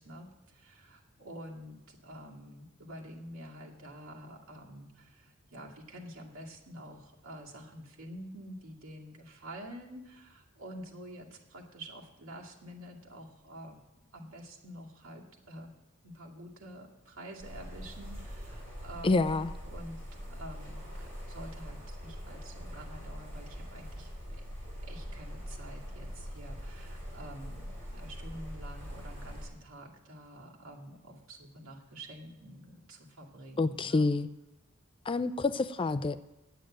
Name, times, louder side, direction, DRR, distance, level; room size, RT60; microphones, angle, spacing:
voice 1, 0.0-13.8 14.1-15.7 16.0-24.4 24.8-34.1, right 1 dB, 75° right, -2 dB, 2.3 m, -48 dB
sound 1, 17.4-29.5, equal, 35° right, 6.1 m, -43 dB
voice 2, 19.0-19.5 33.6-34.3 35.1-36.3, left 3 dB, 25° left, 13 dB, 0.4 m, -28 dB
9.2 x 9.0 x 8.7 m, 0.95 s
head